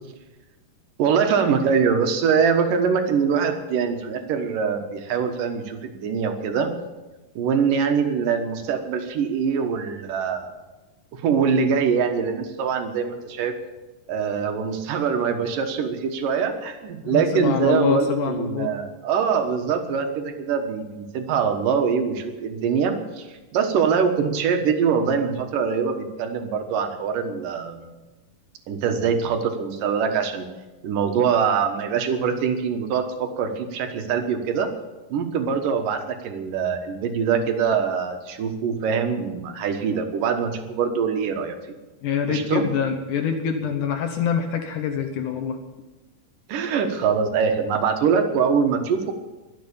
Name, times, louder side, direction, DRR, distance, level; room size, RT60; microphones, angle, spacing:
voice 1, 1.0-6.7 7.4-10.5 11.1-13.5 14.1-23.3 23.5-27.9 28.7-30.5 30.8-34.7 35.1-41.6 42.3-42.7 46.5-49.1, right 6 dB, 75° right, 6 dB, 2.9 m, -23 dB
voice 2, 17.0-18.7 42.0-45.6, left 6 dB, 70° left, 6 dB, 2.4 m, -25 dB
22.0 x 7.7 x 7.0 m, 1.1 s
omnidirectional pair, 4.0 m